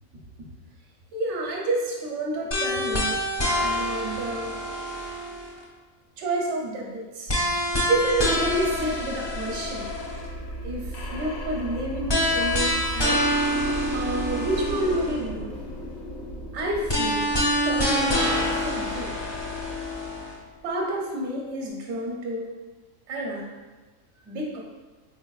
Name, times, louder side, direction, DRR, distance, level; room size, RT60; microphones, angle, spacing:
voice 1, 1.1-3.2 3.6-4.6 6.2-7.3 7.9-9.9 10.6-13.3 13.9-15.5 16.5-17.3 17.6-19.1 20.6-22.5 23.1-23.5 24.3-24.6, right 1 dB, 65° right, -2 dB, 0.9 m, -29 dB
sound 1, 2.5-5.6 7.3-10.3 12.1-15.2 16.9-20.3, equal, 30° left, 0.5 m, -26 dB
sound 2, 7.8-20.6, equal, 80° left, 1.0 m, -36 dB
4.0 x 3.5 x 2.3 m, 1.3 s
omnidirectional pair, 1.4 m